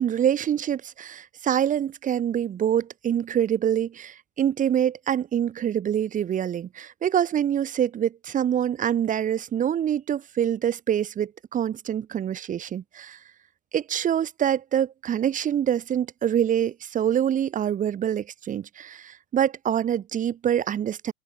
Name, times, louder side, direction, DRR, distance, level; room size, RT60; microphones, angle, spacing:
voice 1, 0.0-13.2 13.7-21.1, right 9 dB, 20° right, 6.9 m, -25 dB
open air
supercardioid pair, 150°, 36 cm